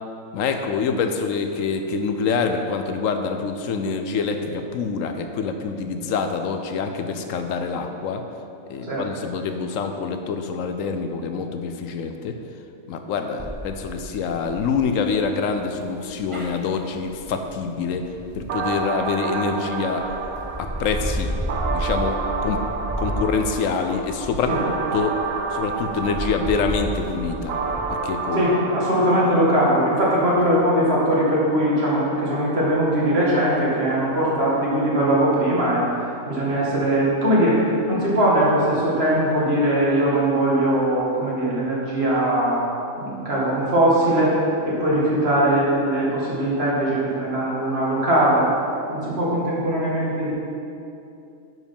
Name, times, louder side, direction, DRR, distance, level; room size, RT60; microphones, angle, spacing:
voice 1, 0.3-8.2 8.7-12.3 12.9-18.0 18.3-20.0 20.6-21.3 21.7-22.6 23.0-24.5 24.9-25.1 25.5-27.5 28.0-28.4, left 5 dB, 75° left, 6 dB, 1.0 m, -26 dB
sound 1, 13.4-19.4 19.9-27.8, equal, 25° right, 0.9 m, -32 dB
sound 2, 18.5-30.5, right 4 dB, 80° right, 1.1 m, -30 dB
voice 2, 28.3-35.8 36.3-42.6 43.0-44.4 44.6-48.5 48.9-50.3, right 1 dB, 50° right, -6 dB, 2.2 m, -20 dB
9.4 x 5.1 x 5.3 m, 2.7 s
omnidirectional pair, 1.4 m